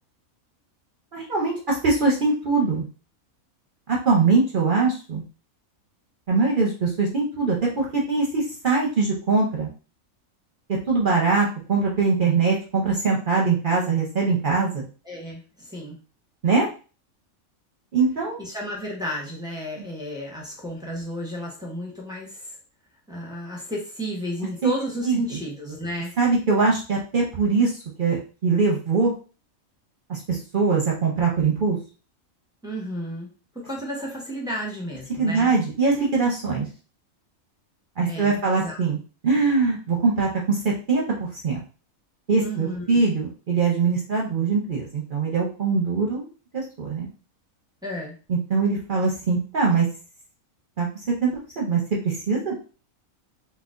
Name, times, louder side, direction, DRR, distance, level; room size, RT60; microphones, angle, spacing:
voice 1, 1.1-2.9 3.9-5.2 6.3-9.7 10.7-14.8 16.4-16.7 17.9-18.4 24.6-24.7 25.1-25.2 26.2-27.7 28.0-29.1 30.1-31.8 35.1-36.7 38.0-39.0 39.2-41.6 42.3-46.3 46.5-47.1 48.3-49.9 50.8-51.3 51.6-52.5, right 4 dB, 50° right, -2 dB, 0.6 m, -22 dB
voice 2, 15.0-16.0 18.4-22.6 23.1-26.1 32.6-33.3 33.5-35.5 38.1-38.8 42.4-43.0 47.8-48.2, equal, 5° right, -3 dB, 0.6 m, -32 dB
4.0 x 2.3 x 2.4 m, 0.35 s
omnidirectional pair, 1.5 m